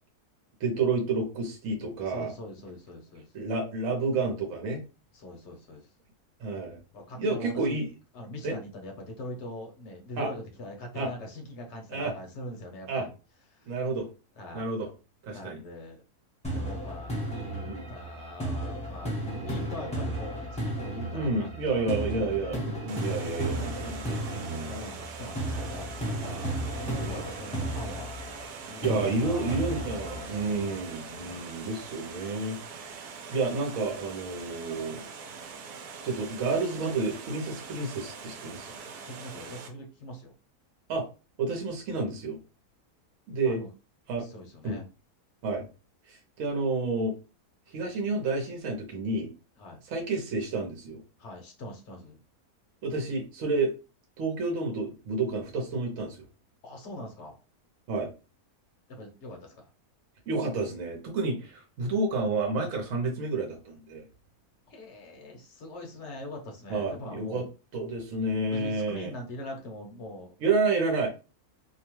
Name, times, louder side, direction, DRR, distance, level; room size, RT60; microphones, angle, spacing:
voice 1, 0.6-2.3 3.3-4.8 6.4-6.8 7.2-7.9 8.4-8.6 10.2-10.3 10.9-11.1 11.9-12.1 12.9-13.1 13.7-14.1 14.5-14.9 15.2-15.6 17.7-17.9 21.1-24.8 28.8-35.0 36.0-38.7 40.9-41.0 41.4-42.4 43.3-43.6 44.1-44.3 44.6-44.8 45.4-45.7 46.1-47.1 47.7-49.3 49.9-51.0 52.8-53.7 54.2-56.2 57.9-58.1 60.3-64.0 66.7-67.4 67.7-69.1 70.4-71.1, right 3 dB, 65° right, 1 dB, 1.1 m, -30 dB
voice 2, 2.0-3.3 5.1-5.9 6.9-7.8 8.1-13.1 13.5-13.8 14.3-14.7 15.3-16.0 16.5-22.6 24.7-28.1 28.7-31.5 39.1-40.3 43.4-43.7 44.2-44.9 49.6-49.8 51.2-52.2 56.6-57.4 58.9-59.7 64.7-67.5 68.5-70.3, left 1 dB, 55° left, 2 dB, 1.0 m, -42 dB
sound 1, 16.4-31.4, right 1 dB, 5° left, 0.7 m, -34 dB
Water, 22.9-39.7, right 5 dB, 80° right, 1.1 m, -43 dB
2.8 x 2.2 x 3.0 m, 0.32 s
omnidirectional pair, 1.6 m